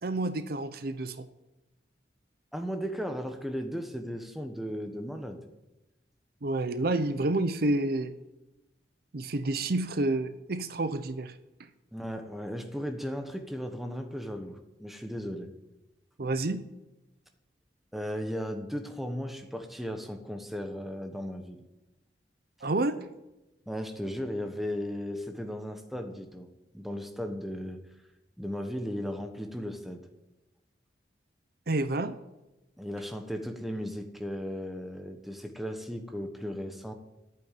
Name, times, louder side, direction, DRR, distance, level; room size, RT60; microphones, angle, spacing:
voice 1, 0.0-1.3 6.4-8.1 9.1-11.3 16.2-16.6 22.6-23.1 31.7-32.1, right 2 dB, 60° right, 11 dB, 0.7 m, -29 dB
voice 2, 2.5-5.4 11.9-15.5 17.9-21.6 23.7-26.5 26.7-27.8 28.4-30.0 32.8-36.9, equal, ahead, 5 dB, 1.2 m, -36 dB
10.5 x 8.9 x 9.0 m, 0.98 s
head